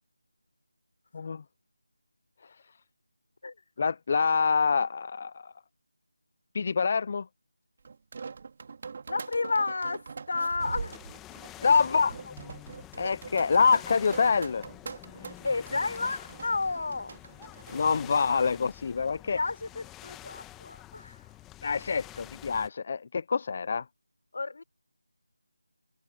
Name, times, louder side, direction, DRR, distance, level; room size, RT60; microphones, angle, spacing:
voice 1, 3.8-5.5 6.5-7.3 11.6-12.1 13.0-14.6 17.7-19.4 21.6-23.8, left 5 dB, 35° left, 0.4 m, -26 dB
sound 1, 7.8-17.9, right 5 dB, 35° right, 2.4 m, -42 dB
voice 2, 9.1-10.9 11.6-11.8 12.3-12.4 15.2-17.1 19.1-21.2 24.3-24.6, left 3 dB, 50° left, 4.4 m, -32 dB
sound 2, 10.6-22.7, left 15 dB, 5° left, 1.3 m, -48 dB
figure-of-eight pair, 170°, 0 cm